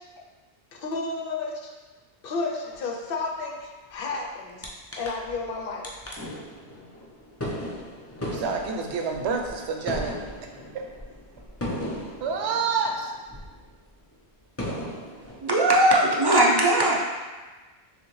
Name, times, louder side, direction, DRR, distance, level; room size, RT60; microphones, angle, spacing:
voice 1, 0.7-1.7 2.2-4.6 5.0-5.9, left 3 dB, 60° left, 0.8 m, -32 dB
sound 1, 4.6-4.7 4.9-5.5 5.8-13.7 14.1-14.2 14.6-15.4, left 1 dB, 20° left, 0.4 m, -36 dB
voice 2, 8.2-10.2 10.7-10.8 12.2-13.1, right 5 dB, 80° right, 0.9 m, -28 dB
voice 3, 15.4-16.9, right 1 dB, 30° right, 0.5 m, -19 dB
6.3 x 2.2 x 3.1 m
omnidirectional pair, 1.1 m